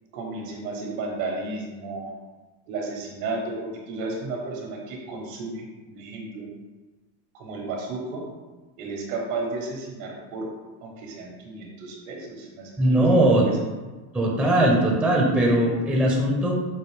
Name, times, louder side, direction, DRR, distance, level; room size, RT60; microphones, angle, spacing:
voice 1, 0.1-2.2 2.7-6.5 7.3-8.2 8.8-10.5 10.8-13.6, right 3 dB, 65° right, 0 dB, 1.3 m, -33 dB
voice 2, 12.8-13.4 14.1-16.5, right 1 dB, 5° right, -2 dB, 0.6 m, -20 dB
6.1 x 2.6 x 3.3 m, 1.3 s
supercardioid pair, 140°, 44 cm